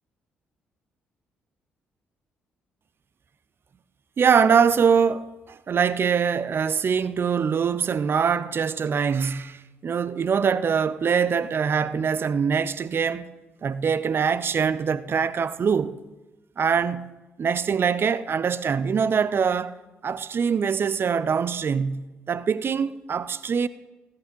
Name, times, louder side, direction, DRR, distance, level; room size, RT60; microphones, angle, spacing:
voice 1, 4.2-13.3 13.6-16.0 16.6-17.0 17.4-19.8 20.0-23.7, right 6 dB, 40° right, 0.6 m, -23 dB
16.0 x 9.6 x 5.4 m
figure-of-eight pair, 40°, 6 cm